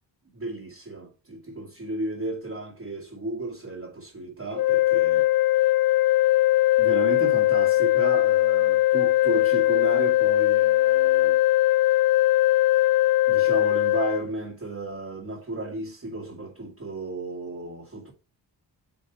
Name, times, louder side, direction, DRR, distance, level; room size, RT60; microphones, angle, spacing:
voice 1, 0.3-5.3 6.8-11.4 13.3-18.1, right 2 dB, 30° right, 2.2 m, -33 dB
sound 1, 4.5-14.2, left 16 dB, 50° left, 0.5 m, -20 dB
9.2 x 3.4 x 3.9 m
cardioid pair, 100°, 45 cm